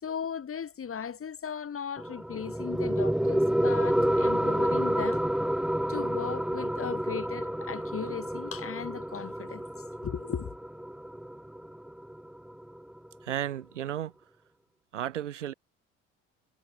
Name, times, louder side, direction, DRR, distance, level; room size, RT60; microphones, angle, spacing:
voice 1, 0.0-5.2 5.9-9.7 10.0-10.5, left 7 dB, 40° left, 4.0 m, -37 dB
sound 1, 2.0-13.0, equal, ahead, 0.8 m, -29 dB
voice 2, 13.2-14.1 14.9-15.5, right 11 dB, 80° right, 2.1 m, -33 dB
figure-of-eight pair, 55°, 36 cm